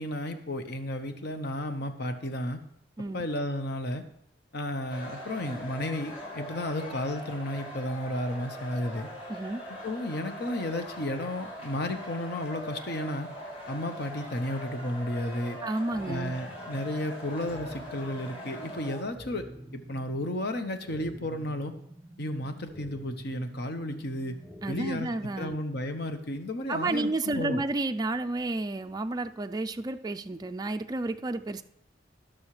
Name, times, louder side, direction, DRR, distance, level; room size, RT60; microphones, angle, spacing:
voice 1, 0.0-2.6 3.1-4.0 4.5-9.1 9.8-13.3 13.7-15.6 16.1-19.5 19.7-21.8 22.2-24.3 24.7-25.1 25.4-27.6, left 1 dB, 60° left, 7 dB, 1.1 m, -33 dB
sound 1, 4.9-19.0, equal, 35° left, 3.1 m, -41 dB
voice 2, 9.3-9.6 15.6-16.3 24.6-25.6 26.7-31.6, right 2 dB, 20° right, 7 dB, 0.4 m, -31 dB
sound 2, 15.9-25.9, equal, ahead, 0.9 m, -48 dB
17.5 x 6.4 x 3.2 m, 0.77 s
head